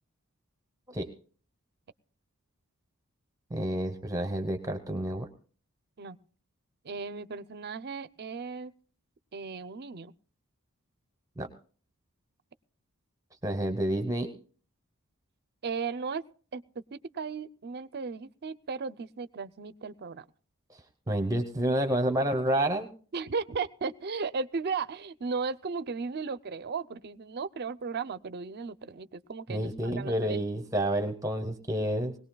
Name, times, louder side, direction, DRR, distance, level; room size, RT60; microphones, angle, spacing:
voice 1, 3.5-5.3 11.4-11.5 13.4-14.3 20.7-22.9 29.5-32.2, right 1 dB, 15° right, 6 dB, 0.9 m, -29 dB
voice 2, 6.8-8.7 9.3-10.1 15.6-16.2 16.5-20.3 23.1-30.4, right 5 dB, 50° right, 15 dB, 0.5 m, -36 dB
20.5 x 18.0 x 2.3 m, 0.42 s
head